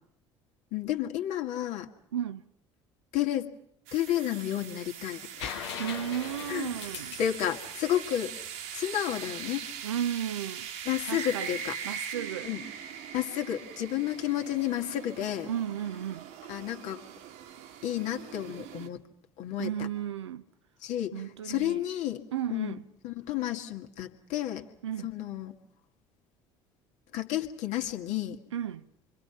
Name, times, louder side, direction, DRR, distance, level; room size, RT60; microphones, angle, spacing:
voice 1, 0.7-1.9 3.1-3.5 3.9-5.7 6.5-6.7 7.2-8.3 8.7-9.6 10.9-11.8 12.4-12.6 13.1-15.5 16.5-17.0 17.8-19.0 19.4-19.7 20.8-22.2 22.5-22.8 23.0-24.6 25.0-25.5 27.1-28.4, left 12 dB, 55° left, 2.1 m, -31 dB
voice 2, 2.1-2.4 5.8-7.2 9.8-10.7 11.1-12.5 15.5-16.3 19.6-20.4 21.1-21.8 22.3-22.8 24.8-25.1 28.5-28.9, right 10 dB, 75° right, 0.9 m, -34 dB
sound 1, 3.9-18.9, right 8 dB, 60° right, 1.8 m, -41 dB
sound 2, 5.4-9.1 11.0-11.1, left 8 dB, 70° left, 1.6 m, -41 dB
28.5 x 24.5 x 5.8 m
figure-of-eight pair, 60°, 15 cm